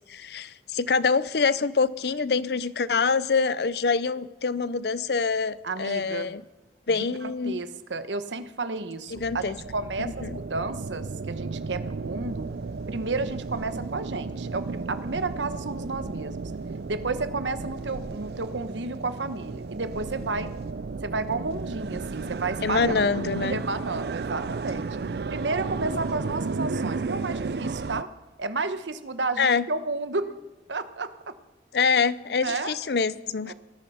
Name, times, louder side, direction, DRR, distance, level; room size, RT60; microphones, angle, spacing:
voice 1, 0.1-6.4 6.9-7.6 9.1-9.6 10.0-10.4 22.6-23.6 29.4-29.7 31.7-33.5, left 5 dB, 65° left, 17 dB, 0.6 m, -25 dB
voice 2, 5.6-6.3 6.9-12.5 12.9-16.5 16.9-20.5 21.0-23.0 23.4-24.9 25.3-28.1 28.4-30.3 30.7-31.3 32.4-32.7 33.5-33.6, right 3 dB, 90° right, 11 dB, 1.1 m, -32 dB
sound 1, 9.1-28.0, right 4 dB, 60° right, 0.5 m, -33 dB
20.0 x 13.0 x 5.6 m, 1.1 s
head